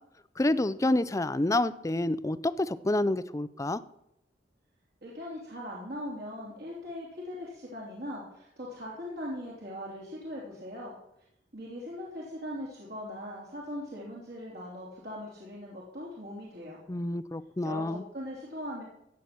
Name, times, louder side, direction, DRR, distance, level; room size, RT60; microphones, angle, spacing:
voice 1, 0.4-3.8 16.9-18.0, left 1 dB, 20° left, 15 dB, 0.5 m, -28 dB
voice 2, 5.0-11.0 11.5-16.8 17.6-18.8, equal, 60° right, -5 dB, 3.1 m, -40 dB
16.0 x 5.9 x 8.4 m, 0.81 s
head